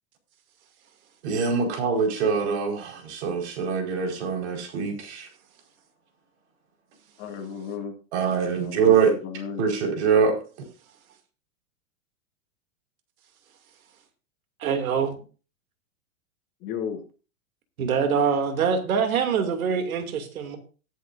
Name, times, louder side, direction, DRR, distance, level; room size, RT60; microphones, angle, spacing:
voice 1, 1.2-5.3 8.1-9.1 9.6-10.4, right 6 dB, 50° right, 4.8 m, -23 dB
voice 2, 7.2-8.0 8.5-9.6 16.6-17.0, left 7 dB, 30° left, 2.3 m, -34 dB
voice 3, 14.6-15.1 17.8-20.6, right 6 dB, 80° right, 2.7 m, -24 dB
19.0 x 8.3 x 2.6 m
supercardioid pair, 160°, 42 cm